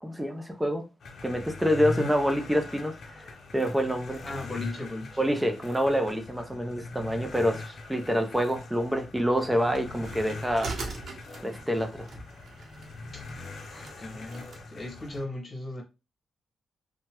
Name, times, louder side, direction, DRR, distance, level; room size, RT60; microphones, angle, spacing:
voice 1, 0.0-0.8 1.2-2.9 3.5-4.2 5.2-10.7 11.4-12.1, equal, 10° right, 0.6 m, -27 dB
sound 1, 1.0-15.2, left 3 dB, 65° left, 0.6 m, -42 dB
voice 2, 4.2-5.2 13.1-13.3 13.7-15.8, left 2 dB, 35° left, 1.2 m, -37 dB
sound 2, 9.7-14.6, right 3 dB, 60° right, 0.8 m, -41 dB
2.8 x 2.2 x 2.9 m
cardioid pair, 80°, 0 cm